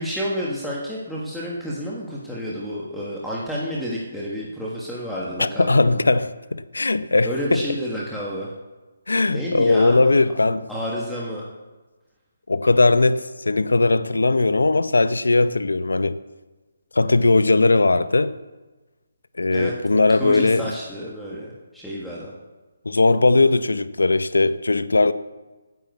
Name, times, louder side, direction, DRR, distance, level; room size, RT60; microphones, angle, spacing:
voice 1, 0.0-6.0 7.2-8.5 9.3-10.0 10.7-11.4 19.5-19.7 20.2-22.3, equal, ahead, 1.5 m, -30 dB
voice 2, 5.4-7.7 9.1-10.7 12.5-16.2 16.9-18.3 19.4-20.7 22.8-25.1, left 3 dB, 90° left, 0.7 m, -19 dB
9.3 x 7.4 x 8.1 m
hypercardioid pair, 155°, 0 cm